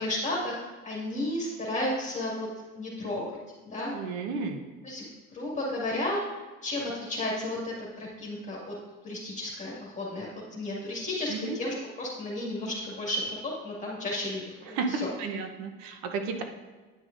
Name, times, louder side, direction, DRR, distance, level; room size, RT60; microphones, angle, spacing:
voice 1, 0.0-2.5 2.7-3.4 3.6-3.9 4.8-5.0 5.3-6.2 6.6-8.7 9.0-15.1, left 1 dB, 20° left, -5 dB, 2.2 m, -33 dB
voice 2, 3.9-4.6 11.3-11.6 14.7-16.4, right 4 dB, 70° right, 5 dB, 1.0 m, -33 dB
9.7 x 6.3 x 2.6 m, 1.3 s
supercardioid pair, 95°, 33 cm